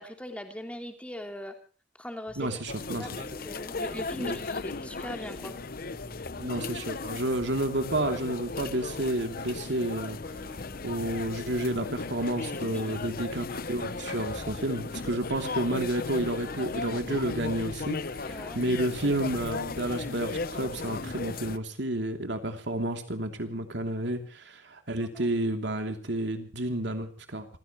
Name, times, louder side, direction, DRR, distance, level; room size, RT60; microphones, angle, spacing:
voice 1, 0.0-1.6 2.0-2.5 3.0-3.1 3.4-5.5 12.7-13.0 18.3-18.6 25.0-25.3, left 1 dB, 5° left, 4 dB, 3.2 m, -40 dB
sound 1, 2.3-2.6 2.9-3.6 3.9-4.9 5.2-5.6 5.9-6.9 7.2-8.2 9.5-11.2 11.9-12.2 12.9-13.6 13.9-15.9 16.2-17.6 18.5-18.9 19.2-19.6 19.9-21.4, equal, 10° right, 4.0 m, -49 dB
voice 2, 2.4-3.1 4.2-4.4 6.4-10.2 10.8-27.5, right 1 dB, 65° right, 6 dB, 3.0 m, -31 dB
sound 2, 2.7-21.6, left 3 dB, 55° left, 0.9 m, -36 dB
28.0 x 16.0 x 3.1 m, 0.37 s
head